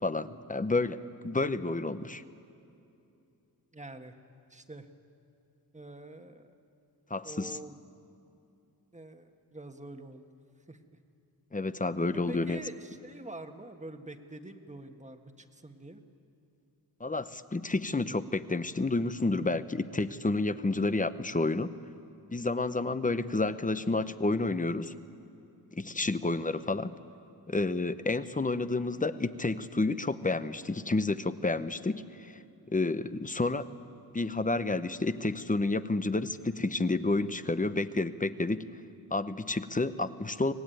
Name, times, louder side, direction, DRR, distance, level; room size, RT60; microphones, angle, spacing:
voice 1, 0.0-2.2 7.1-7.6 11.5-12.6 17.0-21.7 22.3-24.9 25.7-26.9 27.5-32.3 32.7-33.7 34.1-38.7 39.1-40.5, left 3 dB, 20° left, 13 dB, 0.8 m, -30 dB
voice 2, 3.7-4.1 4.5-4.9 5.7-6.4 7.2-7.8 8.9-10.3 10.7-10.8 12.3-16.0 26.0-26.1, right 2 dB, 20° right, 6 dB, 1.4 m, -45 dB
25.0 x 19.0 x 9.2 m, 2.7 s
wide cardioid pair, 95°, 39 cm